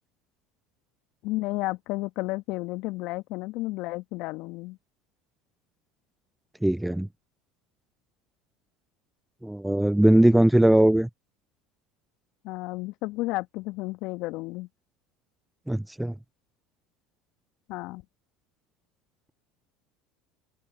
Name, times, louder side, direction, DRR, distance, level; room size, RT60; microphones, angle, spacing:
voice 1, 1.2-4.8 12.4-14.7 17.7-18.0, left 21 dB, 60° left, 1.3 m, -32 dB
voice 2, 6.6-7.1 9.4-11.1 15.7-16.1, right 1 dB, 5° right, 0.5 m, -20 dB
hypercardioid pair, 75°, 0 cm